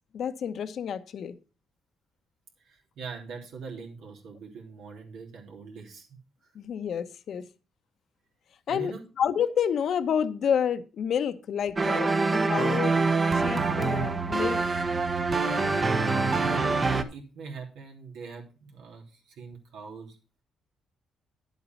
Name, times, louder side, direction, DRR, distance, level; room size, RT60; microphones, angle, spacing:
voice 1, 0.1-1.4 6.5-7.5 8.7-13.0 13.3-14.7, left 8 dB, 65° left, 0.9 m, -29 dB
voice 2, 2.6-6.2 8.7-9.0 16.4-20.2, right 5 dB, 85° right, 3.1 m, -42 dB
sound 1, 11.8-17.0, right 3 dB, 35° right, 1.1 m, -25 dB
10.0 x 8.3 x 4.4 m
cardioid pair, 90°, 0 cm